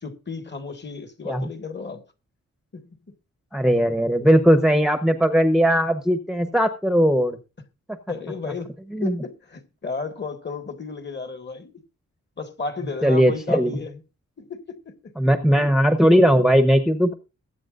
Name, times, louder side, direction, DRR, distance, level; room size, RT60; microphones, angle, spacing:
voice 1, 0.0-2.0 2.7-3.2 8.1-11.8 12.4-14.0 14.4-15.1, left 4 dB, 35° left, 1.8 m, -34 dB
voice 2, 3.5-7.4 8.9-9.1 13.0-13.8 15.2-17.1, equal, ahead, 0.9 m, -18 dB
22.5 x 8.5 x 2.5 m
wide cardioid pair, 155°, 31 cm